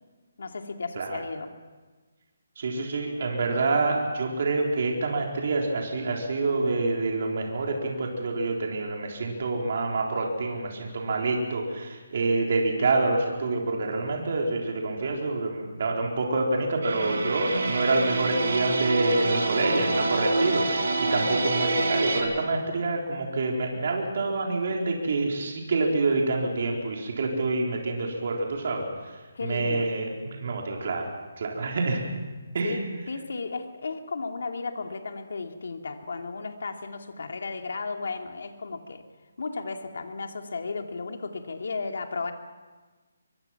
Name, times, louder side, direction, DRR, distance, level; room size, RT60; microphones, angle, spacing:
voice 1, 0.4-1.5 29.3-29.9 32.6-39.0 39.4-42.3, left 4 dB, 65° left, 5 dB, 2.4 m, -34 dB
voice 2, 2.6-28.8 29.4-31.1 31.4-32.0 32.5-32.8, right 3 dB, 45° right, 0 dB, 3.9 m, -27 dB
sound 1, 16.8-22.2, right 2 dB, 65° right, 5.2 m, -27 dB
23.5 x 23.0 x 5.9 m, 1.3 s
hypercardioid pair, 170°, 0 cm